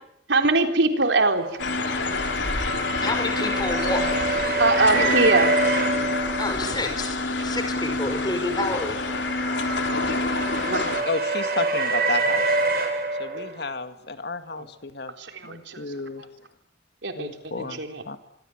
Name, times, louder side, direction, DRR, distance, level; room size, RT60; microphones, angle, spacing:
voice 1, 0.3-1.5 4.6-5.6 6.7-6.8 9.6-9.7 10.7-10.9 13.4-13.5 14.6-14.7 15.2-15.9 17.0-18.0, right 3 dB, 85° right, 5 dB, 3.9 m, -23 dB
sound 1, 1.3-6.9 8.3-13.6, right 3 dB, 55° right, 6.4 m, -27 dB
sound 2, 1.6-11.0, left 3 dB, 80° left, 3.6 m, -27 dB
voice 2, 3.0-4.4 6.4-7.2 7.4-8.9, left 2 dB, 25° left, 7 dB, 5.4 m, -29 dB
voice 3, 4.7-5.2 11.1-12.6 13.2-15.1 15.4-16.3 17.2-18.2, left 3 dB, 60° left, 9 dB, 2.1 m, -32 dB
26.0 x 23.0 x 9.0 m, 0.71 s
head